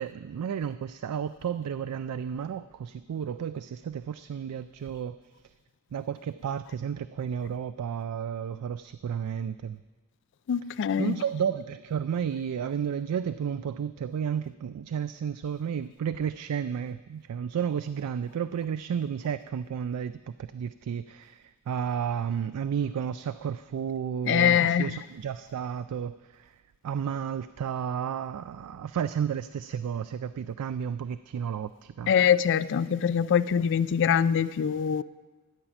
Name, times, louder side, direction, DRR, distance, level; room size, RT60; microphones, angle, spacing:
voice 1, 0.0-5.2 5.4-5.5 5.9-9.8 11.0-26.6 26.8-32.1, right 8 dB, 90° right, 0.3 m, -32 dB
voice 2, 10.5-11.1 24.3-25.0 32.1-35.0, left 8 dB, 55° left, 0.4 m, -23 dB
13.0 x 5.9 x 9.0 m
head